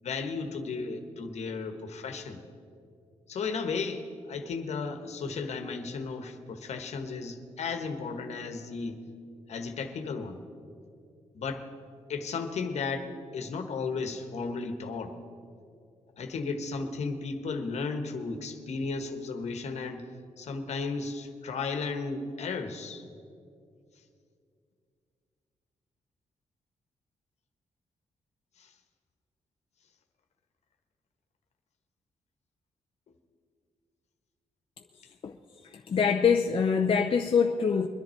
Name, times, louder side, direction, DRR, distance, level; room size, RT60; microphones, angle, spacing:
voice 1, 0.0-2.4 3.3-9.0 9.5-10.4 11.3-11.6 12.1-13.1 13.3-15.2 16.2-20.1 20.4-23.0 28.6-28.7, left 4 dB, 70° left, 7 dB, 1.3 m, -34 dB
voice 2, 35.6-37.9, left 6 dB, 50° left, 3 dB, 0.6 m, -24 dB
22.5 x 10.5 x 4.5 m, 2.4 s
cardioid pair, 80°, 12 cm